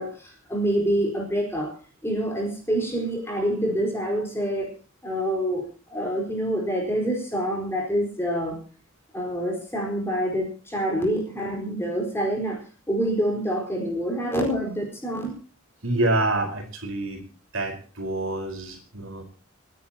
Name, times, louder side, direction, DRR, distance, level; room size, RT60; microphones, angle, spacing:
voice 1, 0.0-1.8 2.0-4.7 5.0-8.6 9.1-12.6 12.9-15.4, equal, 10° left, 0 dB, 4.4 m, -26 dB
voice 2, 15.8-17.2 17.5-19.2, right 2 dB, 70° right, 3 dB, 4.5 m, -27 dB
29.5 x 10.0 x 2.9 m, 0.37 s
head